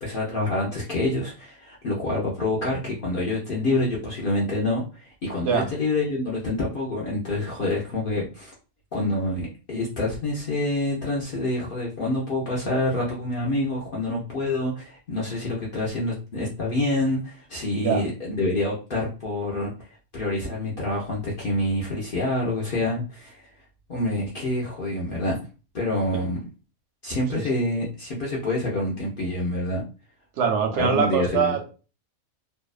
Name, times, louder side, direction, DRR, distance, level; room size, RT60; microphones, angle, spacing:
voice 1, 0.0-8.5 8.9-19.7 20.1-23.5 23.9-25.4 25.7-26.4 27.0-29.8 30.8-31.6, left 2 dB, 60° left, -4 dB, 0.5 m, -27 dB
voice 2, 30.4-31.7, right 6 dB, 65° right, 4 dB, 0.7 m, -23 dB
2.7 x 2.1 x 2.3 m, 0.35 s
omnidirectional pair, 1.6 m